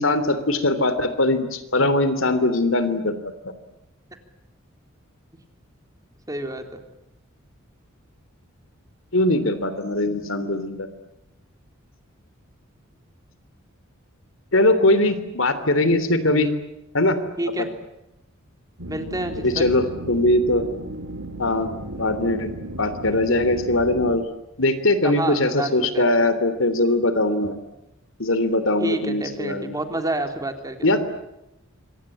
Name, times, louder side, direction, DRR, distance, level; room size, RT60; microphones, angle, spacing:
voice 1, 0.0-3.3 9.1-10.9 14.5-16.5 16.9-17.2 17.6-17.7 19.4-20.7 21.4-22.5 22.8-24.2 24.6-27.5 28.2-29.8 30.8-31.0, left 2 dB, 65° left, 12 dB, 3.2 m, -21 dB
voice 2, 6.3-6.6 17.4-17.7 18.9-19.6 25.0-26.3 28.8-30.9, right 1 dB, 15° right, 6 dB, 3.5 m, -28 dB
sound 1, 18.8-24.2, right 1 dB, 65° right, 3.3 m, -35 dB
27.0 x 24.5 x 8.6 m, 0.88 s
head